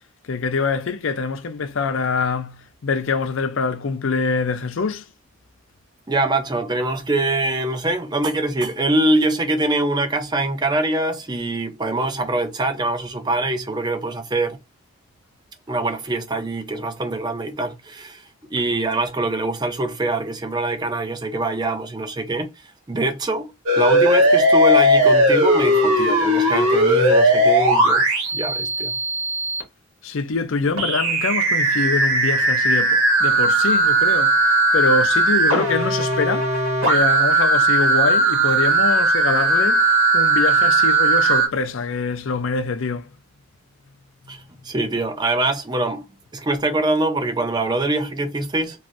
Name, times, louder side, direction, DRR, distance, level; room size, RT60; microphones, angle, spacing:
voice 1, 0.3-5.1 30.0-43.1, left 4 dB, 65° left, 0.5 m, -24 dB
voice 2, 6.1-14.6 15.7-18.2 18.5-22.5 22.9-29.0 44.3-46.1 46.3-48.9, right 2 dB, 20° right, 0.4 m, -24 dB
sound 1, 23.7-29.6 30.8-41.5, right 1 dB, 65° right, 1.4 m, -17 dB
3.2 x 2.5 x 2.5 m
head